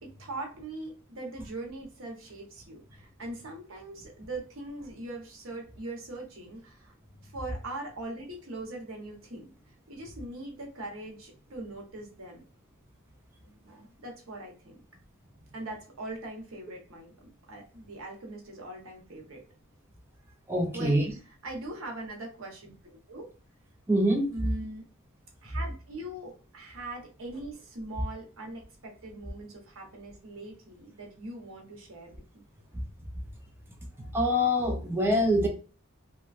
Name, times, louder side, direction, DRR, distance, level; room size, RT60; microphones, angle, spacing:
voice 1, 0.0-6.9 7.2-12.4 13.4-14.8 15.5-19.4 20.7-23.3 24.3-24.8 25.4-32.1, right 2 dB, 70° right, 1 dB, 0.9 m, -41 dB
voice 2, 20.5-21.0 23.9-24.3 34.1-35.5, equal, 10° right, 0 dB, 0.4 m, -24 dB
3.0 x 2.3 x 2.4 m, 0.37 s
head